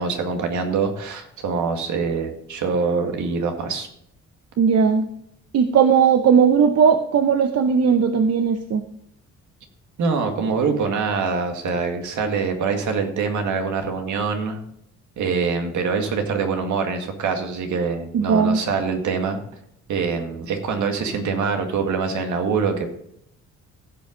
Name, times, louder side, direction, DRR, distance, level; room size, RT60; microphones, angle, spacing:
voice 1, 0.0-3.9 10.0-14.6 15.2-19.4 19.9-22.9, right 5 dB, 75° right, 4 dB, 2.0 m, -24 dB
voice 2, 4.6-5.0 5.5-8.8 18.1-18.6, right 6 dB, 55° right, 7 dB, 0.8 m, -17 dB
16.0 x 6.0 x 3.9 m, 0.73 s
cardioid pair, 90°, 30 cm